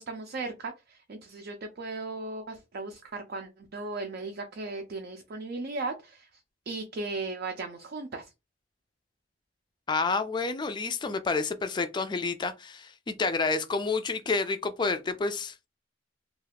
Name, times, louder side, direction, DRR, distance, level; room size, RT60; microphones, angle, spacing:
voice 1, 0.0-6.4 6.7-8.3, right 3 dB, 55° right, 0.4 m, -37 dB
voice 2, 9.9-15.5, left 4 dB, 25° left, 0.3 m, -29 dB
2.3 x 2.3 x 3.3 m
head